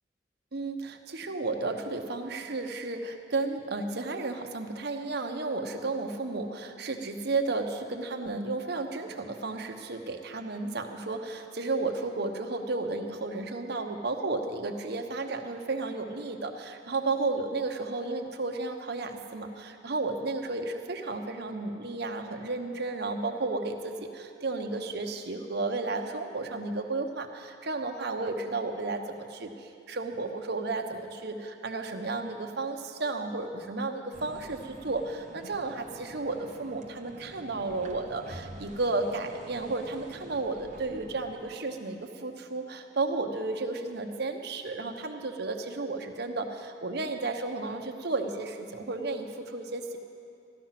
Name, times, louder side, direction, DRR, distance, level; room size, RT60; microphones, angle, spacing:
voice 1, 0.5-50.0, right 3 dB, 65° right, 4 dB, 1.1 m, -33 dB
sound 1, 34.1-41.6, right 1 dB, 40° right, 0.9 m, -48 dB
14.5 x 12.0 x 5.9 m, 2.5 s
head